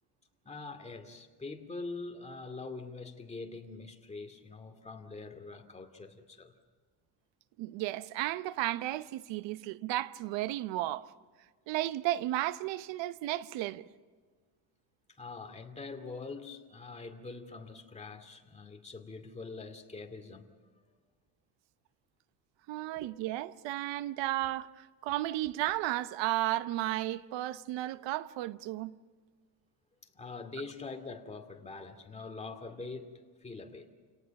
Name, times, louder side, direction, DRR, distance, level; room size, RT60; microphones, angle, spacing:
voice 1, 0.4-6.5 15.2-20.5 23.0-23.2 30.1-33.1 33.4-33.9, left 3 dB, 15° left, 2.3 m, -44 dB
voice 2, 7.6-11.1 11.7-13.8 22.7-28.9, right 15 dB, 80° right, 0.9 m, -34 dB
29.0 x 18.0 x 5.9 m
cardioid pair, 125°, 43 cm